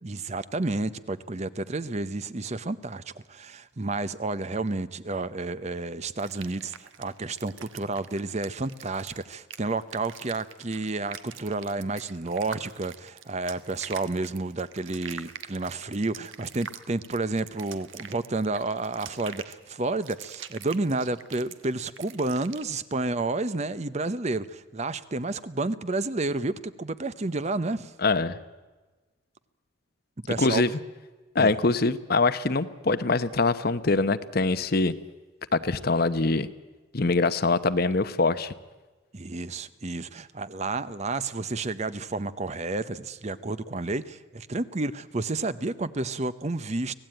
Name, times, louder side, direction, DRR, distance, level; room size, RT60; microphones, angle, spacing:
voice 1, 0.0-3.0 3.3-27.9 30.3-30.6 31.4-31.5 39.1-46.9, right 2 dB, 35° right, 14 dB, 0.8 m, -30 dB
sound 1, 6.2-22.6, right 8 dB, 75° right, 1.3 m, -45 dB
voice 2, 28.0-28.4 30.4-30.7 31.3-34.9 35.5-36.5 36.9-38.5, left 3 dB, 50° left, 13 dB, 0.9 m, -23 dB
25.0 x 17.5 x 9.0 m, 1.3 s
head